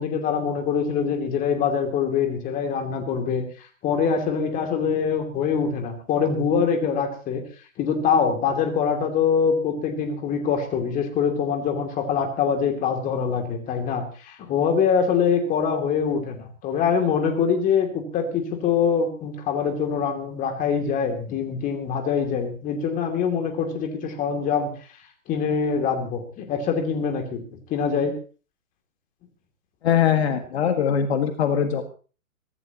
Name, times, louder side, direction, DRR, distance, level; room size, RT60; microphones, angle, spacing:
voice 1, 0.0-3.4 3.8-7.4 7.8-24.7 25.3-27.4 27.7-28.2, left 6 dB, 20° left, 4 dB, 2.8 m, -24 dB
voice 2, 29.8-31.8, left 8 dB, 50° left, 6 dB, 2.0 m, -21 dB
23.5 x 15.0 x 3.0 m, 0.37 s
hypercardioid pair, 140°, 40 cm